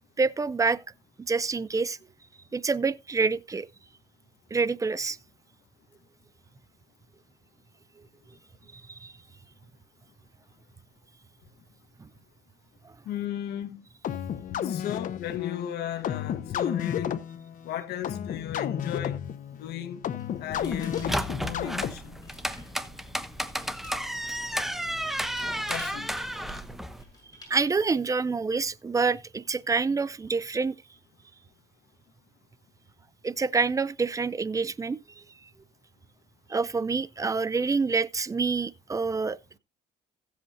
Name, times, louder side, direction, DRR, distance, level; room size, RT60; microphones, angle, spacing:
voice 1, 0.2-0.8 1.3-2.0 2.5-3.7 4.5-5.2 8.9-9.1 12.0-12.1 27.5-30.8 33.2-35.0 36.5-39.6, right 4 dB, 20° right, 0.6 m, -27 dB
voice 2, 13.1-13.8 14.6-17.2 17.6-19.2 19.6-20.0 20.4-22.1 25.7-26.1, left 11 dB, 75° left, 1.3 m, -36 dB
sound 1, 14.0-22.3, left 9 dB, 50° left, 0.9 m, -32 dB
sound 2, 20.2-27.5, left 2 dB, 20° left, 7.1 m, -52 dB
sound 3, 20.5-27.0, equal, ahead, 0.9 m, -33 dB
16.0 x 7.9 x 2.7 m
cardioid pair, 110°, 17 cm